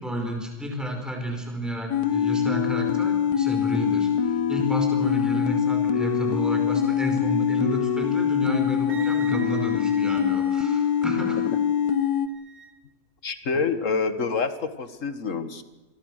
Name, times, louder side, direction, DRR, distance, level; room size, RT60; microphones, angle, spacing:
voice 1, 0.0-11.4 13.5-13.7, equal, ahead, 2 dB, 5.2 m, -31 dB
sound 1, 1.9-12.3, left 8 dB, 70° left, 1.6 m, -24 dB
Wind instrument woodwind instrument, 8.9-12.7, right 5 dB, 60° right, 1.9 m, -44 dB
voice 2, 13.2-15.6, left 5 dB, 50° left, 11 dB, 1.8 m, -27 dB
28.0 x 22.0 x 6.5 m, 1.2 s
omnidirectional pair, 1.7 m